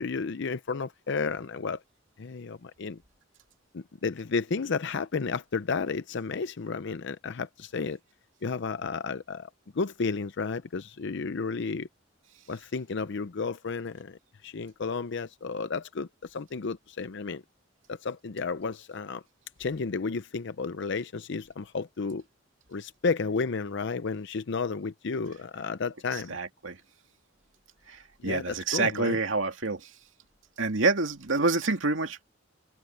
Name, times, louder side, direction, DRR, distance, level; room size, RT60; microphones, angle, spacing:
voice 1, 0.0-1.8 2.2-3.0 3.7-8.0 8.4-9.5 9.7-11.9 12.5-17.4 17.9-19.2 19.6-22.2 22.7-26.4 28.2-29.2, left 4 dB, 65° left, 0.6 m, -32 dB
voice 2, 26.3-26.8 27.9-28.0 28.2-29.8 30.6-32.2, right 3 dB, 90° right, 2.4 m, -27 dB
head